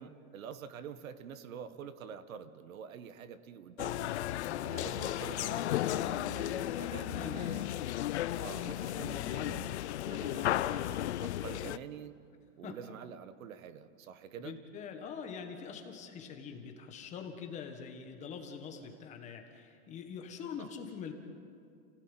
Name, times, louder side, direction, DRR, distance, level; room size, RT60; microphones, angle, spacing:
voice 1, 0.0-4.1 4.6-7.7 8.3-9.8 10.1-12.1 12.6-14.6 16.3-16.4 20.6-20.7, right 8 dB, 65° right, 13 dB, 1.5 m, -47 dB
sound 1, 3.8-11.8, left 13 dB, 50° left, 0.7 m, -34 dB
voice 2, 4.5-4.9 6.8-7.4 12.6-12.8 14.4-21.1, left 6 dB, 15° left, 4 dB, 1.5 m, -44 dB
30.0 x 17.0 x 9.1 m, 2.4 s
supercardioid pair, 175°, 44 cm